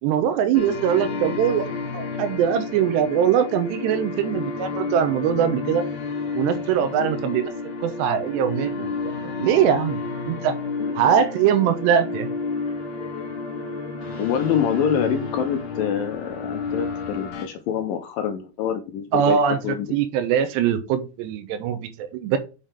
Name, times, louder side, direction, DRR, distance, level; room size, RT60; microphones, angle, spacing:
voice 1, 0.0-5.8 6.3-7.5 7.8-8.9 9.4-10.5 10.9-12.3 19.1-22.4, right 8 dB, 85° right, 9 dB, 3.0 m, -22 dB
sound 1, 0.5-17.5, left 4 dB, 55° left, 2.1 m, -30 dB
voice 2, 14.2-19.9, left 7 dB, 75° left, 6 dB, 2.2 m, -26 dB
6.9 x 5.7 x 3.4 m, 0.31 s
omnidirectional pair, 4.9 m